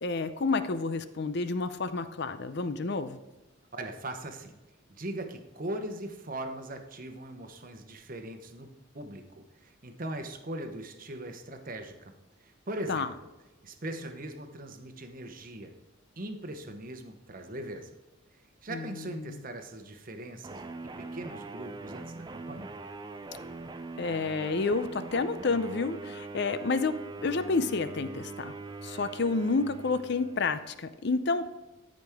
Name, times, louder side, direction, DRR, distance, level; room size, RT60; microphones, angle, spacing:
voice 1, 0.0-3.2 12.9-13.1 18.7-19.4 24.0-27.0 27.2-28.6 28.8-31.5, left 3 dB, 50° left, 12 dB, 0.5 m, -30 dB
voice 2, 3.7-4.5 4.9-12.1 12.4-13.1 13.6-15.7 16.2-17.9 18.6-22.8, right 1 dB, 40° right, 6 dB, 0.9 m, -40 dB
sound 1, 20.4-30.7, right 3 dB, 20° right, 0.3 m, -42 dB
13.5 x 5.2 x 3.5 m, 1.1 s
head